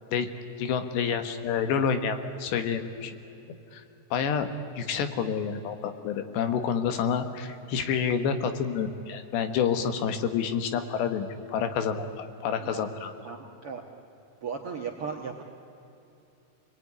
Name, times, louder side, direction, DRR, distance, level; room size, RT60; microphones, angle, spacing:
voice 1, 0.6-3.2 3.5-3.8 4.1-4.5 4.8-13.1, left 7 dB, 90° left, 8 dB, 3.8 m, -28 dB
voice 2, 13.2-13.8 14.4-15.4, right 6 dB, 65° right, 1 dB, 1.4 m, -36 dB
28.0 x 20.5 x 9.8 m, 2.9 s
omnidirectional pair, 4.8 m